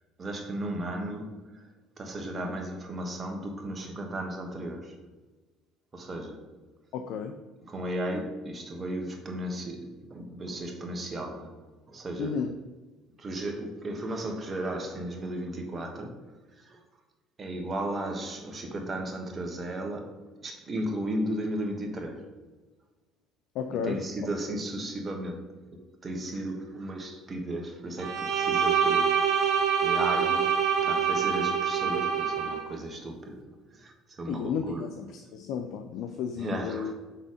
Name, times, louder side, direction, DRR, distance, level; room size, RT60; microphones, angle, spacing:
voice 1, 0.2-5.0 5.9-6.6 7.6-12.4 13.2-16.8 17.4-22.3 23.7-29.5 29.8-35.0 36.3-36.9, right 1 dB, 35° right, 1.3 m, -35 dB
voice 2, 6.9-7.3 12.2-12.5 23.6-24.0 34.3-36.9, left 7 dB, 65° left, 0.4 m, -33 dB
Bowed string instrument, 28.0-32.6, right 7 dB, 65° right, 0.8 m, -25 dB
5.6 x 4.1 x 4.9 m
hypercardioid pair, 65°, 0 cm